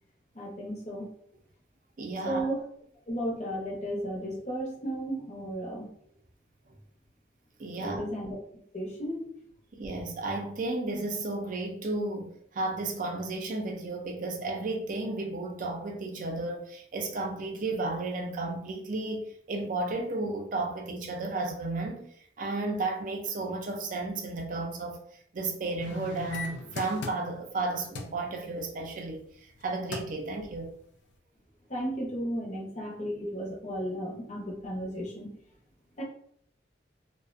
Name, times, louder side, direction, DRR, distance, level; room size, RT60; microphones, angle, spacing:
voice 1, 0.3-1.1 2.2-2.6 3.1-5.9 7.8-8.4 8.7-9.3 31.7-35.3 36.0-36.1, equal, 40° left, 0.7 m, -34 dB
voice 2, 2.0-2.5 7.6-8.0 9.7-19.2 19.5-22.1 22.4-30.7, right 2 dB, 50° right, 0.4 m, -33 dB
sound 1, 25.8-27.6 28.0-28.2 29.5-29.6 29.9-30.3 30.8-30.9, left 4 dB, 80° left, 0.3 m, -38 dB
2.4 x 2.1 x 2.5 m
head